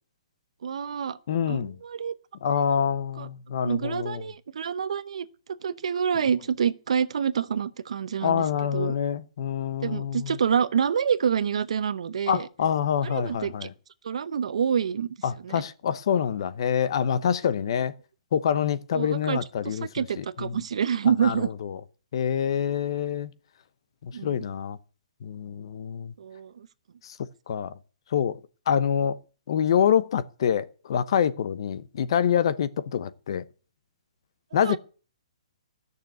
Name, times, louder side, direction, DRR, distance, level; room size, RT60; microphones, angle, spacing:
voice 1, 0.6-1.2 1.5-2.1 2.5-2.8 3.2-3.3 3.6-5.3 5.6-8.4 8.7-8.9 9.8-12.5 13.0-13.7 14.0-15.1 15.4-15.6 18.9-19.4 19.6-21.5 24.1-24.4 26.2-26.7 34.5-34.8, right 7 dB, 65° right, 0.9 m, -27 dB
voice 2, 1.3-1.8 2.4-4.2 8.2-10.4 12.3-13.7 15.2-17.9 18.3-20.5 21.2-21.8 22.1-23.3 24.0-24.8 25.2-26.1 27.0-27.2 27.5-27.7 28.1-28.4 28.7-29.2 29.5-33.4 34.5-34.8, left 8 dB, 45° left, 0.9 m, -26 dB
13.0 x 6.7 x 9.2 m
hypercardioid pair, 170°, 4 cm